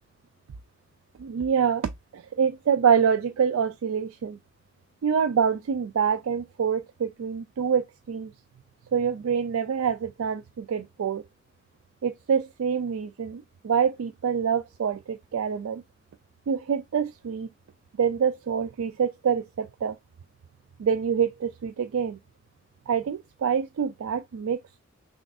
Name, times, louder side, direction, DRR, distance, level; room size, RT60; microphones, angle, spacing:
voice 1, 1.2-4.4 5.0-8.3 8.9-11.2 12.0-15.8 16.5-17.5 18.0-20.0 20.8-22.2 22.9-24.6, right 7 dB, 80° right, 0.4 m, -26 dB
5.9 x 2.4 x 2.3 m
head